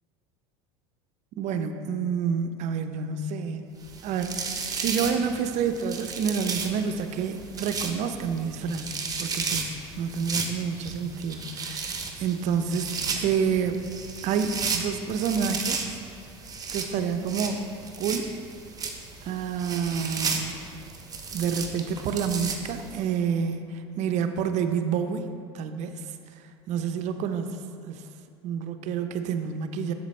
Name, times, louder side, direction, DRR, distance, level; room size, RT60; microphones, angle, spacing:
voice 1, 1.4-13.8 14.2-15.8 16.7-17.7 18.0-18.4 19.2-20.8 21.3-25.3 25.5-26.0 26.4-27.6 27.8-28.1 28.4-29.9, right 6 dB, 55° right, 8 dB, 0.6 m, -29 dB
sound 1, 3.8-23.0, right 4 dB, 25° right, 0.9 m, -34 dB
7.4 x 7.3 x 3.2 m, 2.4 s
hypercardioid pair, 90°, 15 cm